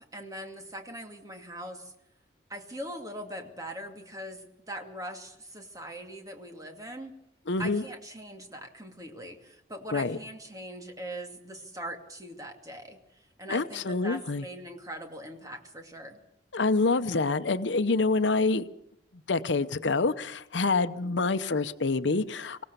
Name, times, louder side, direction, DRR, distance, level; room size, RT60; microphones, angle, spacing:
voice 1, 0.1-1.9 2.5-7.1 7.6-16.2, equal, 20° right, 4 dB, 2.4 m, -41 dB
voice 2, 7.5-7.8 9.9-10.2 13.5-14.4 16.5-18.7 19.3-22.7, left 3 dB, 75° left, 11 dB, 0.8 m, -26 dB
25.0 x 17.0 x 6.8 m, 0.78 s
head